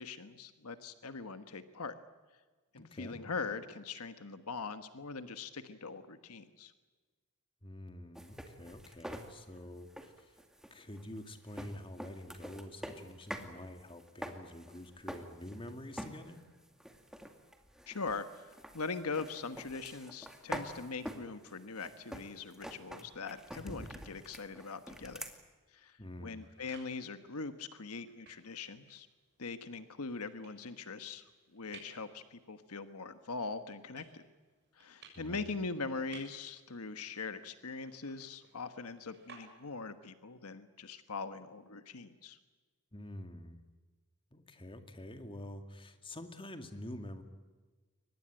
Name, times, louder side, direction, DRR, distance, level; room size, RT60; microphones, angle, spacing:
voice 1, 0.0-1.9 2.7-6.7 17.9-25.2 25.7-29.1 29.4-31.2 31.5-34.2 34.8-42.4, left 4 dB, 75° left, 10 dB, 1.3 m, -42 dB
voice 2, 2.8-3.2 7.6-10.4 10.7-16.4 26.0-26.5 35.2-35.6 42.9-43.6 44.3-47.2, left 1 dB, 25° left, 7 dB, 2.1 m, -47 dB
sound 1, 8.1-13.5 13.8-15.7 16.0-16.4 16.8-25.3, equal, ahead, 2.2 m, -46 dB
sound 2, 26.0-40.0, right 4 dB, 50° right, 6.8 m, -61 dB
23.5 x 20.0 x 9.0 m, 1.3 s
head